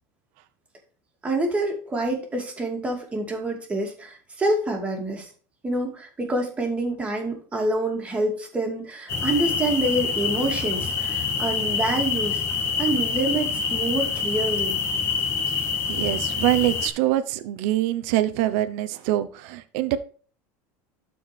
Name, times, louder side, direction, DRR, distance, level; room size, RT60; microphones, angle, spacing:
voice 1, 1.2-5.3 5.6-12.4 12.8-14.8, right 1 dB, 15° right, 1 dB, 2.4 m, -27 dB
sound 1, 9.1-16.9, left 6 dB, 30° left, 1.5 m, -26 dB
voice 2, 15.9-20.0, right 14 dB, 70° right, 12 dB, 0.8 m, -24 dB
12.5 x 4.6 x 3.4 m, 0.41 s
supercardioid pair, 145°, 8 cm